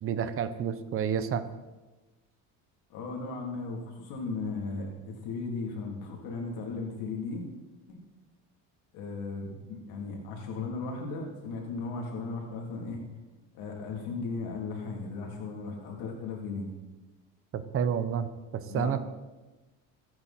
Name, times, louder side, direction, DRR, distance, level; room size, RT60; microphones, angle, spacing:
voice 1, 0.0-1.4 17.5-19.0, right 7 dB, 35° right, 11 dB, 1.0 m, -30 dB
voice 2, 2.9-7.4 7.9-8.0 8.9-13.0 13.5-16.7 18.7-19.1, left 4 dB, 70° left, 0 dB, 3.4 m, -36 dB
23.0 x 9.6 x 4.4 m, 1.2 s
cardioid pair, 130°, 37 cm